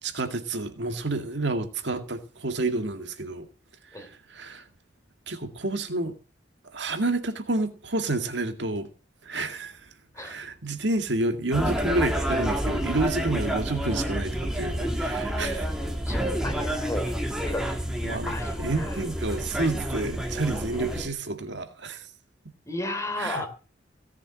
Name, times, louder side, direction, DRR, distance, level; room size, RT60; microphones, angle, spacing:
voice 1, 0.0-3.5 3.9-4.7 5.3-6.1 6.7-8.9 9.2-9.9 10.2-15.7 18.0-22.1 23.2-23.4, right 2 dB, 70° right, 2.1 m, -29 dB
sound 1, 11.5-21.1, right 1 dB, 5° right, 2.8 m, -29 dB
voice 2, 16.4-17.1 17.5-17.7 18.3-19.0 22.7-23.5, left 2 dB, 15° left, 3.5 m, -33 dB
17.5 x 7.4 x 7.7 m
head